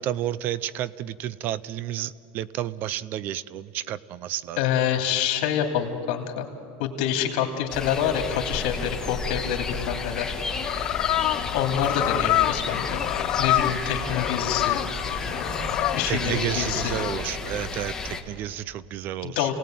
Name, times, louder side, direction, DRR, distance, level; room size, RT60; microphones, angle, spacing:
voice 1, 0.0-4.6 16.1-19.5, right 12 dB, 40° right, 19 dB, 0.5 m, -31 dB
voice 2, 4.6-6.4 6.8-10.3 11.5-13.0 13.4-14.8 15.9-16.9 19.2-19.5, left 9 dB, 65° left, 4 dB, 2.9 m, -26 dB
sound 1, 7.7-18.2, left 3 dB, 10° left, 1.3 m, -32 dB
sound 2, 10.2-17.2, left 14 dB, 40° left, 0.7 m, -27 dB
sound 3, 11.8-17.2, right 2 dB, 85° right, 4.1 m, -45 dB
29.0 x 18.5 x 9.2 m, 2.7 s
supercardioid pair, 160°, 5 cm